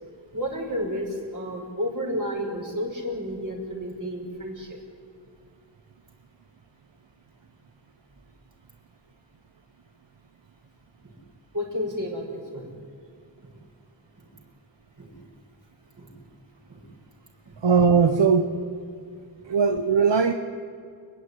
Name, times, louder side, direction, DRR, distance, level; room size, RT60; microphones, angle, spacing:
voice 1, 0.3-4.7 11.0-11.1 11.5-12.7 14.2-14.3 15.0-15.2 16.0-16.1 16.7-16.8 17.5-17.6, equal, 45° right, 0 dB, 6.0 m, -31 dB
voice 2, 17.6-18.5 19.4-20.3, right 5 dB, 70° right, 7 dB, 1.1 m, -19 dB
29.0 x 11.0 x 9.9 m, 2.4 s
wide cardioid pair, 70°, 44 cm